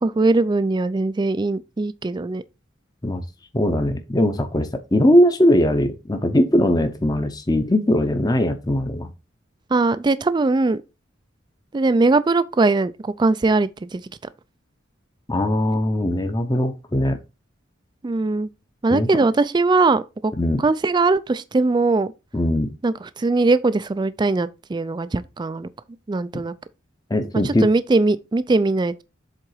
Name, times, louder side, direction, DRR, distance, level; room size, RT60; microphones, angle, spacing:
voice 1, 0.0-2.4 9.7-10.8 11.7-14.0 18.0-18.5 18.8-20.3 20.6-22.1 22.8-25.7 26.1-26.5 27.4-29.0, right 3 dB, 20° right, 0.3 m, -20 dB
voice 2, 3.5-9.1 15.3-17.2 18.9-19.1 20.4-20.6 22.3-22.7 27.1-27.7, left 1 dB, 20° left, 0.7 m, -20 dB
7.6 x 3.8 x 4.7 m
head